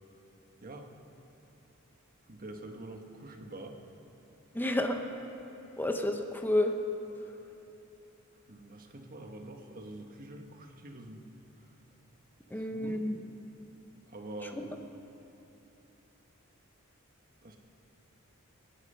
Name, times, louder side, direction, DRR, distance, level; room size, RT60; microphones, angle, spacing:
voice 1, 2.3-3.8 8.5-11.3 12.5-13.0 14.1-14.7 17.4-17.6, right 1 dB, 45° right, 4 dB, 1.4 m, -45 dB
voice 2, 4.5-5.0 5.8-6.8 12.5-13.2, left 1 dB, 10° left, 5 dB, 0.9 m, -30 dB
23.5 x 10.0 x 5.6 m, 3.0 s
head